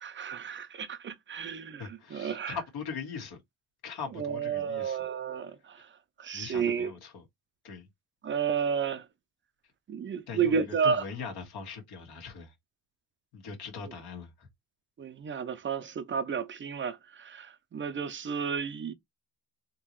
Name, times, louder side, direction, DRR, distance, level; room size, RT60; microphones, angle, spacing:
voice 1, 0.0-2.6 4.1-5.9 6.2-6.9 8.2-9.1 9.9-11.0 15.0-18.9, right 6 dB, 30° right, 0.4 m, -32 dB
voice 2, 1.8-3.4 3.8-5.0 6.3-7.2 7.6-7.9 10.3-12.5 13.3-14.5, left 5 dB, 75° left, 1.5 m, -41 dB
3.7 x 2.8 x 3.0 m
cardioid pair, 150°, 38 cm